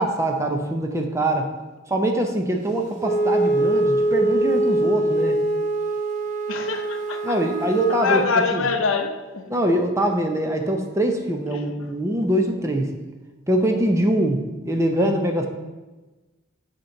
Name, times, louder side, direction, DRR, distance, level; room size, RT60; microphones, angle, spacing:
voice 1, 0.0-1.5 1.9-5.4 7.2-8.2 8.5-8.6 9.5-12.9 13.5-15.5, right 1 dB, 15° right, 3 dB, 0.5 m, -23 dB
Wind instrument woodwind instrument, 3.0-8.3, right 1 dB, 40° right, 0.8 m, -23 dB
voice 2, 6.5-7.4 7.9-9.5 11.5-11.9, left 4 dB, 80° left, 6 dB, 0.6 m, -25 dB
7.8 x 2.9 x 5.7 m, 1.2 s
head